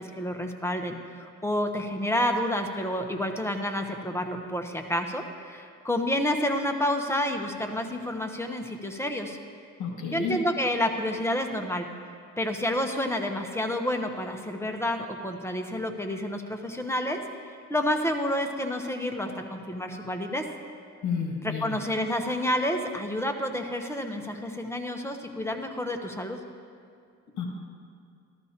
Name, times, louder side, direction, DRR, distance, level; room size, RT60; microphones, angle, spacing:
voice 1, 0.0-9.4 10.1-11.9 12.4-17.2 17.7-20.5 21.6-26.4, left 1 dB, 10° left, 4 dB, 0.9 m, -29 dB
voice 2, 9.8-10.4 21.0-21.8 27.4-27.5, left 6 dB, 70° left, 1 dB, 1.5 m, -31 dB
13.5 x 13.0 x 2.9 m, 2.3 s
cardioid pair, 90°, 30 cm